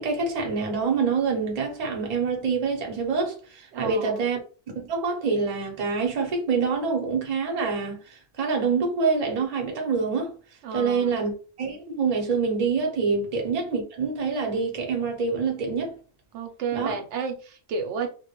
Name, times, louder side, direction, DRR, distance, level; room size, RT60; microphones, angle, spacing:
voice 1, 0.0-4.4 4.8-10.3 10.7-11.3 11.6-15.9 16.7-17.0, right 5 dB, 40° right, 0.7 m, -26 dB
voice 2, 3.7-4.3 10.6-11.3 16.3-18.1, right 5 dB, 85° right, 0.9 m, -32 dB
2.2 x 2.1 x 2.9 m
omnidirectional pair, 1.2 m